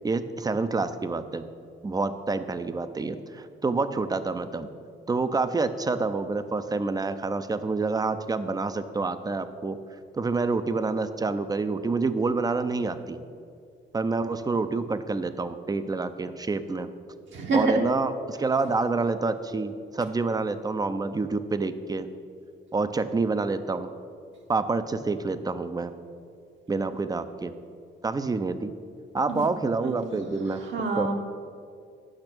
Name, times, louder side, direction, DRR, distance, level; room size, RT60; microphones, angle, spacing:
voice 1, 0.0-1.4 1.8-4.7 5.1-9.8 10.1-13.2 13.9-16.9 17.5-22.1 22.7-23.9 24.5-25.9 26.7-27.5 28.0-28.7 29.1-30.6 30.9-31.1, right 3 dB, 20° right, 11 dB, 0.5 m, -27 dB
voice 2, 17.3-17.8 29.3-29.4 29.8-30.0 30.7-31.1, right 3 dB, 70° right, 2 dB, 1.4 m, -26 dB
8.8 x 5.9 x 6.0 m, 2.3 s
cardioid pair, 90°, 20 cm